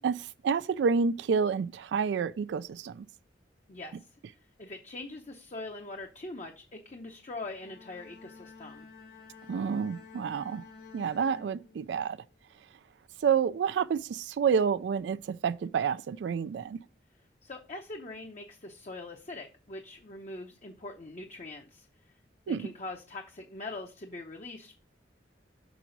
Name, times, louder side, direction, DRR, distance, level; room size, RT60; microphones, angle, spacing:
voice 1, 0.0-3.1 9.5-10.6 10.9-12.2 13.2-16.8 22.5-22.7, right 6 dB, 80° right, 0.3 m, -29 dB
voice 2, 4.6-8.9 17.4-21.9 22.5-24.7, left 2 dB, 40° left, 0.7 m, -42 dB
Bowed string instrument, 7.5-12.2, left 5 dB, 60° left, 1.4 m, -51 dB
6.0 x 5.9 x 3.9 m
head